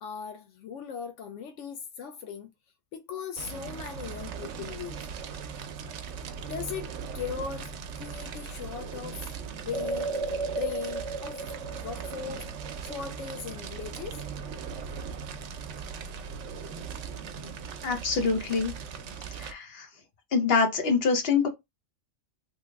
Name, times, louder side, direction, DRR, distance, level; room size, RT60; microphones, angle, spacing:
voice 1, 0.0-2.5 2.9-5.0 6.5-10.1 10.6-11.4 11.7-12.4 12.8-14.2, left 6 dB, 85° left, 0.9 m, -38 dB
Fire, 3.4-19.5, right 6 dB, 85° right, 0.9 m, -39 dB
sound 1, 9.7-13.4 13.8-13.9, right 3 dB, 35° right, 0.5 m, -35 dB
voice 2, 17.8-18.7 19.4-19.9 20.3-21.5, left 5 dB, 60° left, 1.1 m, -25 dB
3.2 x 2.1 x 3.4 m
omnidirectional pair, 1.2 m